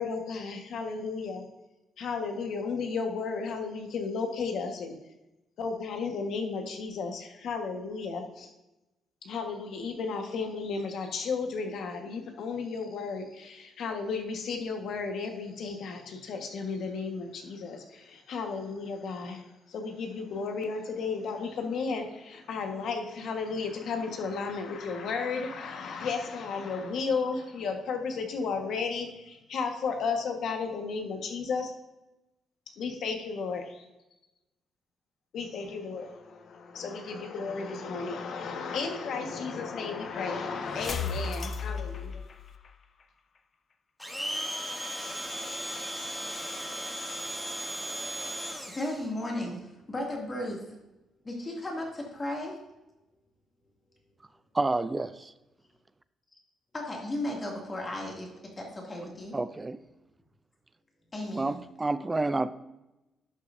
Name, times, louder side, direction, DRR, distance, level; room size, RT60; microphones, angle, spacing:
voice 1, 0.0-1.4 2.0-4.9 5.6-8.5 9.2-31.7 32.8-33.9 35.3-36.2 36.5-42.2, left 5 dB, 65° left, 4 dB, 1.5 m, -34 dB
sound 1, 36.0-42.8, left 5 dB, 40° left, 0.5 m, -38 dB
Domestic sounds home sounds, 44.0-49.1, equal, ahead, 1.1 m, -36 dB
voice 2, 48.7-50.7 51.2-52.6 56.7-59.4 61.1-61.6, left 1 dB, 25° left, -1 dB, 2.4 m, -35 dB
voice 3, 54.5-55.3 59.3-59.8 61.3-62.5, right 2 dB, 20° right, 14 dB, 0.4 m, -29 dB
11.5 x 6.6 x 2.7 m, 0.98 s
cardioid pair, 120°, 0 cm